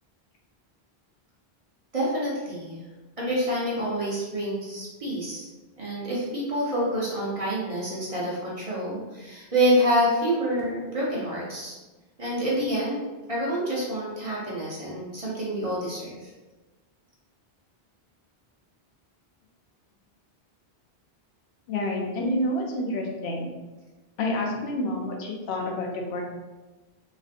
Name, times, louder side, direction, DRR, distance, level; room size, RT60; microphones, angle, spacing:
voice 1, 1.9-2.8 3.2-5.4 5.8-11.7 12.2-13.0 13.3-16.3, equal, 40° right, -6 dB, 0.7 m, -27 dB
voice 2, 21.7-23.5 24.2-26.2, left 1 dB, 80° left, 0 dB, 0.9 m, -28 dB
3.2 x 2.6 x 2.4 m, 1.2 s
omnidirectional pair, 1.1 m